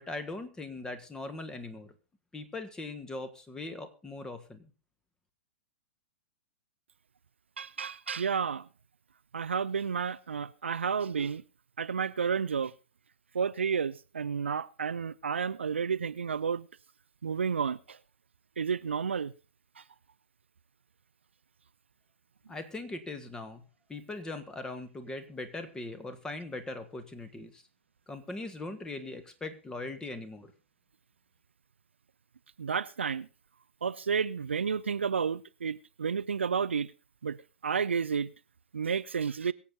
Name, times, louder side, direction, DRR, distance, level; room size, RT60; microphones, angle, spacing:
voice 1, 0.0-1.9 2.3-4.7 22.5-23.6 23.9-27.6 28.1-30.5, left 2 dB, 10° left, 1.8 m, -40 dB
voice 2, 7.6-8.7 9.3-11.4 11.8-12.7 13.3-16.7 17.2-18.0 18.6-19.3 19.8-19.9 32.6-33.3 33.8-36.9 37.2-37.4 37.6-38.3 38.7-39.5, right 6 dB, 70° right, 0.6 m, -31 dB
22.5 x 8.3 x 4.0 m
figure-of-eight pair, 105°, 7 cm